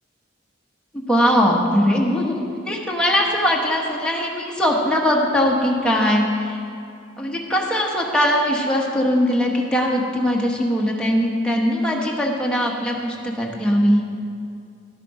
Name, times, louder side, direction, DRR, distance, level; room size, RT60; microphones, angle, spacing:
voice 1, 0.9-6.6 7.2-14.0, equal, 5° left, -2 dB, 1.0 m, -20 dB
11.0 x 6.8 x 4.8 m, 2.4 s
head